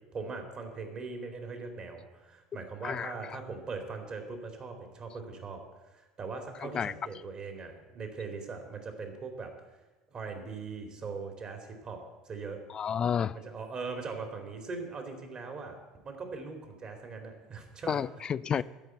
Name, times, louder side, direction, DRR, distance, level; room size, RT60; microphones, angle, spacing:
voice 1, 0.1-5.6 5.9-9.5 10.1-12.0 12.3-12.6 13.3-15.8 16.0-18.0 18.5-18.6, right 4 dB, 35° right, 2.5 m, -40 dB
voice 2, 6.6-6.9 12.7-13.4 17.9-18.6, left 8 dB, 30° left, 0.3 m, -30 dB
13.5 x 5.2 x 9.1 m
figure-of-eight pair, 70°, 3 cm